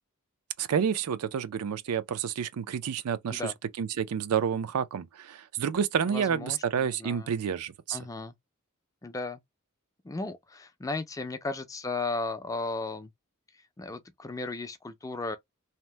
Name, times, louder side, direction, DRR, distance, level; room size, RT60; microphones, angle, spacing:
voice 1, 0.6-3.4 3.8-8.0, right 7 dB, 90° right, 0.4 m, -29 dB
voice 2, 6.1-7.4 7.9-8.3 9.0-9.4 10.0-13.1 13.8-15.4, left 3 dB, 15° left, 0.4 m, -35 dB
2.8 x 2.0 x 3.2 m
head